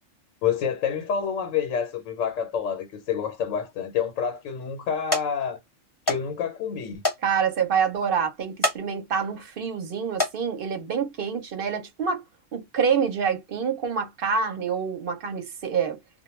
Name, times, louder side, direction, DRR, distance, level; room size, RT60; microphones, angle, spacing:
voice 1, 0.4-5.6 6.1-7.0, left 7 dB, 85° left, 1.1 m, -28 dB
sound 1, 3.7-4.1 4.6-4.8 5.1-5.3 6.1-6.2 6.5-6.6 7.0-7.2 7.6-7.7 8.5-8.8 9.3-9.5 10.0-10.4 11.3-11.5 11.9-12.0, left 2 dB, 20° left, 0.9 m, -26 dB
voice 2, 7.2-12.2 12.5-16.0, right 6 dB, 55° right, 0.7 m, -26 dB
2.2 x 2.2 x 3.0 m
omnidirectional pair, 1.3 m